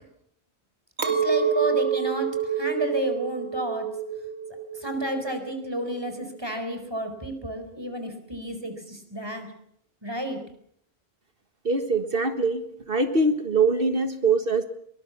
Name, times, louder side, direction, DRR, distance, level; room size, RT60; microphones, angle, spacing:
voice 1, 1.0-2.3 2.6-3.9 4.8-9.5 10.0-10.4, right 1 dB, 20° right, 7 dB, 4.4 m, -31 dB
Chink clink, 1.0-6.4, right 7 dB, 85° right, 2.4 m, -28 dB
voice 2, 11.7-12.6 12.9-14.6, right 3 dB, 55° right, 8 dB, 1.8 m, -23 dB
23.0 x 20.0 x 7.2 m, 0.67 s
omnidirectional pair, 1.1 m